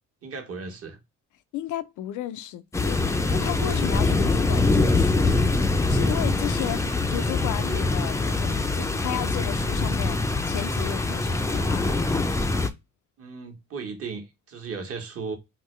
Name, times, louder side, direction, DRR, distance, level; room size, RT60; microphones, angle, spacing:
voice 1, 0.2-1.0 13.2-15.4, right 4 dB, 50° right, 1.2 m, -36 dB
voice 2, 1.5-3.0 3.3-5.3 5.9-10.2 10.4-11.9, left 12 dB, 85° left, 0.5 m, -34 dB
sound 1, 2.7-12.7, left 3 dB, 10° left, 0.4 m, -24 dB
3.8 x 2.1 x 3.1 m
cardioid pair, 90°, 30 cm